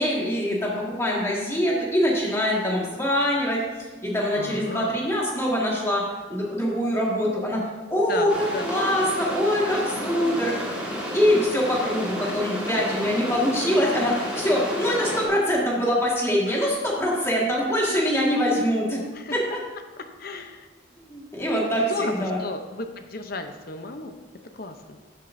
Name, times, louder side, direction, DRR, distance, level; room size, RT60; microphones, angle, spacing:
voice 1, 0.0-6.0 6.3-7.6 7.9-10.5 11.1-19.0 19.3-19.4 21.1-22.4, equal, 15° left, -4 dB, 1.7 m, -24 dB
voice 2, 4.3-4.9 8.1-8.7 11.8-12.0 12.2-12.3 16.5-16.7 19.1-19.4 20.2-20.7 21.7-24.2 24.5-25.0, left 3 dB, 50° left, 7 dB, 0.7 m, -34 dB
sound 1, 8.3-15.3, equal, 5° right, 1.6 m, -31 dB
13.0 x 7.3 x 2.6 m, 1.3 s
head